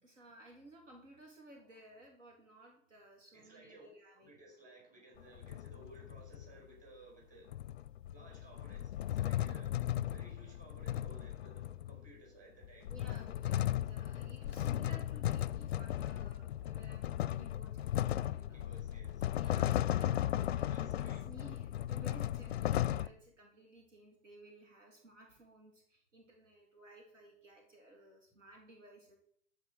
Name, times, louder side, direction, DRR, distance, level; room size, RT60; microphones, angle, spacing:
voice 1, 0.0-4.4 12.9-18.6 19.4-20.1 20.6-29.2, right 1 dB, 65° right, 1 dB, 2.9 m, -57 dB
voice 2, 3.3-3.9 4.2-7.5 8.1-9.8 10.1-12.9 18.5-19.3 20.6-21.3, right 2 dB, 20° right, -1 dB, 5.2 m, -58 dB
sound 1, 5.2-6.5 7.5-12.1 12.6-23.1, left 12 dB, 50° left, 0.5 m, -36 dB
13.0 x 4.9 x 6.4 m, 0.64 s
figure-of-eight pair, 110°, 40 cm